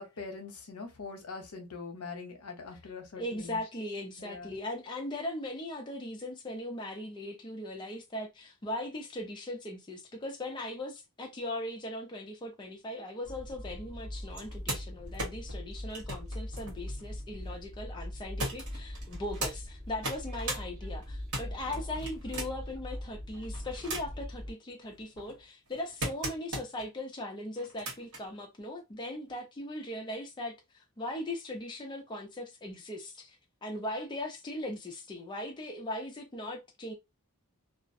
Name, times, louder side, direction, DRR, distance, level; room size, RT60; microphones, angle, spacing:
voice 1, 0.0-3.6 4.2-4.6 21.4-21.8, left 4 dB, 75° left, 0.7 m, -43 dB
voice 2, 3.2-36.9, left 1 dB, 20° left, 0.4 m, -39 dB
Train, 13.2-24.5, left 1 dB, 45° right, 0.9 m, -41 dB
sound 1, 14.3-17.6 18.4-19.5 19.9-20.6 21.0-22.7 23.3-24.3 24.8-26.9 27.6-28.2 29.3-29.4, right 1 dB, 75° right, 1.2 m, -39 dB
2.3 x 2.0 x 2.5 m
head